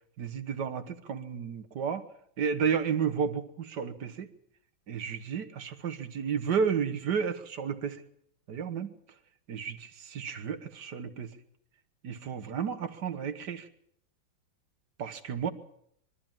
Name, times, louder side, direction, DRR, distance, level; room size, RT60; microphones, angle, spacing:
voice 1, 0.2-2.1 2.4-4.3 4.9-8.0 8.5-8.9 9.5-11.3 12.0-13.7 15.0-15.5, right 7 dB, 60° right, 8 dB, 1.8 m, -32 dB
22.0 x 13.5 x 8.9 m, 0.69 s
omnidirectional pair, 2.2 m